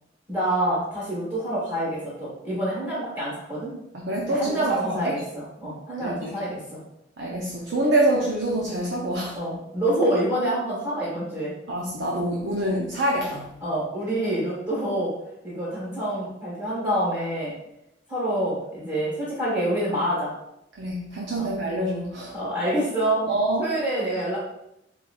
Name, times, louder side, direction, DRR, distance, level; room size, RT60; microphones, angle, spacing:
voice 1, 0.3-3.7 4.3-6.8 9.3-11.5 13.6-15.1 15.4-17.5 18.1-20.3 21.4-21.5 22.3-23.2 23.6-24.4, right 1 dB, 20° right, -8 dB, 1.4 m, -27 dB
voice 2, 3.9-5.2 6.0-6.3 7.2-9.4 11.7-13.5 20.7-22.4 23.3-23.6, right 1 dB, 65° right, -2 dB, 0.6 m, -26 dB
4.0 x 3.9 x 2.3 m, 0.82 s
head